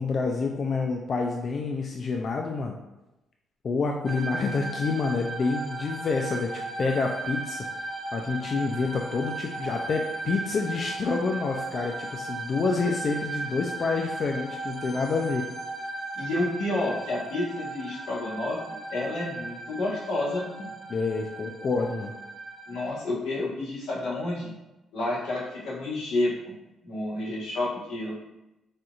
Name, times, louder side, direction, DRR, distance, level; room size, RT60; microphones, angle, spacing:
voice 1, 0.0-2.8 3.6-7.7 8.1-15.5 20.9-22.1, left 4 dB, 45° left, 1 dB, 0.3 m, -28 dB
sound 1, 4.1-22.9, right 2 dB, 10° right, 0.8 m, -36 dB
voice 2, 16.1-18.6 18.9-20.7 22.7-24.5 24.9-26.5 26.8-28.1, left 2 dB, 85° left, -8 dB, 1.4 m, -30 dB
4.2 x 2.5 x 2.4 m, 0.98 s
cardioid pair, 90°, 0 cm